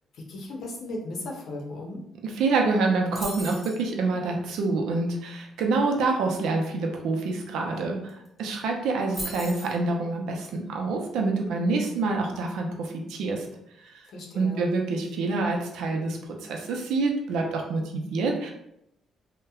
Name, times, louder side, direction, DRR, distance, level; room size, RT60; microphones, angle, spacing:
voice 1, 0.1-2.0 14.1-14.7, left 2 dB, 70° left, -1 dB, 0.7 m, -36 dB
voice 2, 2.2-13.5 13.9-14.0 14.3-18.5, right 3 dB, 85° right, 1 dB, 0.5 m, -27 dB
sound 1, 3.2-3.8 7.8-7.9 8.1-8.4 9.1-9.8, equal, 5° left, 0.8 m, -37 dB
2.8 x 2.1 x 2.3 m, 0.78 s
cardioid pair, 90°, 0 cm